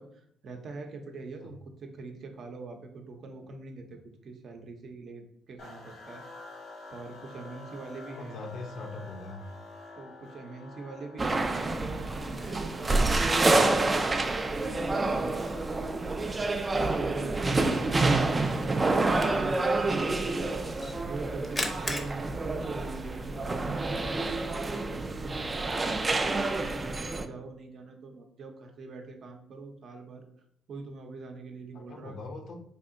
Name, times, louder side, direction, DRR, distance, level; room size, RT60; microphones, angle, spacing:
voice 1, 0.0-6.2 6.9-8.4 10.0-11.5 12.1-15.0 15.4-18.1 18.6-20.6 21.0-24.8 25.2-30.3 30.7-32.2, right 3 dB, 55° right, 4 dB, 0.6 m, -44 dB
sound 1, 5.6-19.0, left 3 dB, 85° left, 1.3 m, -49 dB
voice 2, 8.2-9.4 31.7-32.6, left 3 dB, 70° left, 3 dB, 0.6 m, -41 dB
sound 2, 11.2-27.3, right 2 dB, 25° right, 0.3 m, -28 dB
Camera, 11.6-23.6, left 1 dB, 20° left, 0.6 m, -44 dB
4.1 x 2.7 x 2.6 m, 0.70 s
cardioid pair, 100°, 0 cm